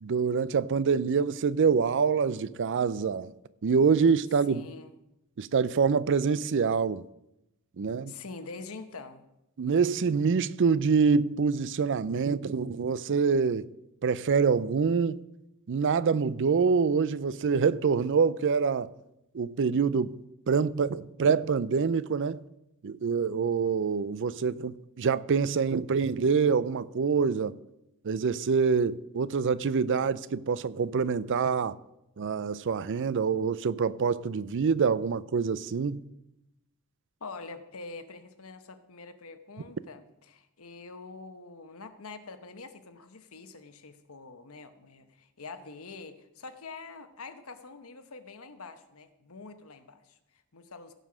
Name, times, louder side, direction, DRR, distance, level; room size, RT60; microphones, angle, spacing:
voice 1, 0.0-3.3 3.6-4.7 5.4-7.0 7.8-8.1 9.6-13.7 14.0-15.2 15.7-18.9 19.3-20.2 20.5-22.4 22.8-27.5 28.0-31.8 32.2-36.0, right 5 dB, 55° right, 0.4 m, -26 dB
voice 2, 4.5-4.9 8.1-9.2 37.2-50.2 50.5-50.9, left 4 dB, 70° left, 1.0 m, -45 dB
16.5 x 5.5 x 6.3 m
head